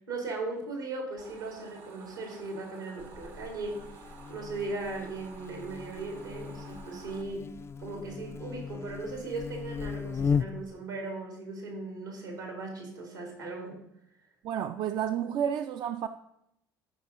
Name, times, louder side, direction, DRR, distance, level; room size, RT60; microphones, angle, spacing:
voice 1, 0.1-7.5 7.8-13.8, right 3 dB, 80° right, 2.4 m, -38 dB
sound 1, 1.2-7.2, right 6 dB, 60° right, 1.0 m, -51 dB
Buzz, 3.0-10.8, left 6 dB, 25° left, 0.3 m, -36 dB
voice 2, 14.4-16.1, right 9 dB, 45° right, 0.4 m, -30 dB
13.5 x 5.4 x 3.8 m
figure-of-eight pair, 60°, 11 cm